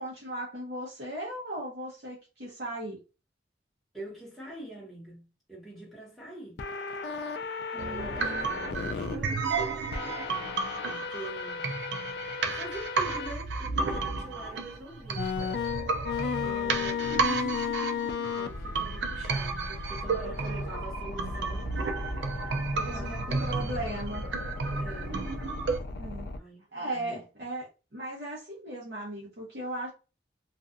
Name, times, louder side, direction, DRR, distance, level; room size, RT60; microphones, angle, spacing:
voice 1, 0.0-3.0 7.7-8.5 22.8-24.2 25.9-26.3 26.7-29.9, right 1 dB, 60° right, 0.8 m, -37 dB
voice 2, 3.9-6.6 7.7-9.9 10.8-11.8 12.4-15.3 16.4-17.3 18.3-21.7 22.7-23.5 24.8-25.1 26.4-27.2, right 1 dB, ahead, 0.9 m, -44 dB
sound 1, 6.6-9.2 9.9-13.3 13.9-14.0 15.2-26.4, left 5 dB, 65° left, 0.3 m, -35 dB
sound 2, 7.8-25.8, right 4 dB, 85° right, 0.4 m, -32 dB
2.5 x 2.3 x 2.4 m
head